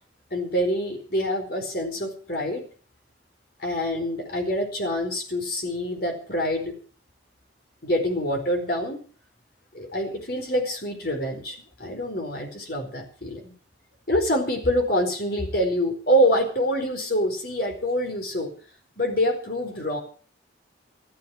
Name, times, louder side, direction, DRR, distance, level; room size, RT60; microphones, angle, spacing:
voice 1, 0.3-2.7 3.6-6.7 7.8-9.0 9.7-13.5 14.1-18.5 19.0-20.0, equal, 50° left, 3 dB, 4.6 m, -26 dB
14.0 x 13.5 x 6.4 m, 0.43 s
head